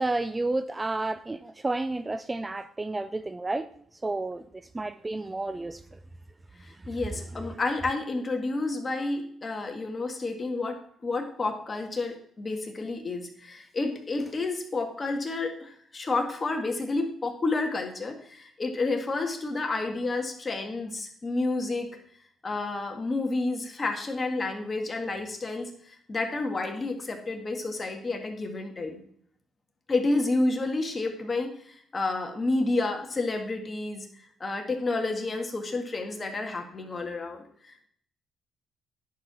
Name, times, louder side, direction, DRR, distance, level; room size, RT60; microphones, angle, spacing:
voice 1, 0.0-3.7 4.0-4.4 4.7-5.8, right 2 dB, 20° right, 12 dB, 0.4 m, -30 dB
voice 2, 6.6-10.8 11.0-21.9 22.4-29.0 29.9-34.1 34.4-37.9, left 3 dB, 30° left, 4 dB, 1.9 m, -30 dB
10.5 x 4.7 x 6.2 m, 0.63 s
cardioid pair, 90°, 0 cm